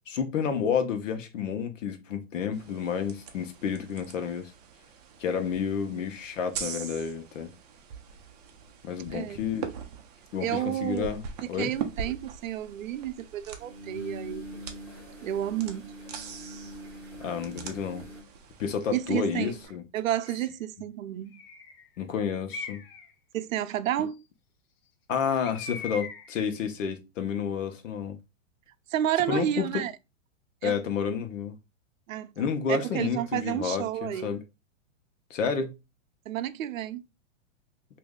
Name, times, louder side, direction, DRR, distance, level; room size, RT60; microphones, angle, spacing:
voice 1, 0.1-4.5 5.2-7.5 8.8-9.7 10.3-11.2 11.5-11.7 17.2-18.1 18.6-19.8 22.0-22.8 25.1-28.2 29.3-29.8 30.6-31.6 32.4-34.4 35.3-35.7, left 7 dB, 75° left, 1.0 m, -30 dB
sound 1, 2.5-19.7, right 6 dB, 30° right, 0.5 m, -43 dB
voice 2, 10.4-11.1 11.4-14.5 15.2-15.9 18.9-19.5 19.9-21.4 23.3-24.2 28.9-29.9 30.6-30.8 32.1-34.3 36.3-37.0, right 12 dB, 90° right, 0.5 m, -31 dB
sound 2, 11.6-11.7 13.6-18.2, equal, 5° right, 1.1 m, -43 dB
Bird, 20.1-20.5 21.3-21.9 22.5-23.1 25.4-26.4, left 4 dB, 50° left, 0.6 m, -40 dB
3.1 x 2.7 x 3.6 m
hypercardioid pair, 155°, 39 cm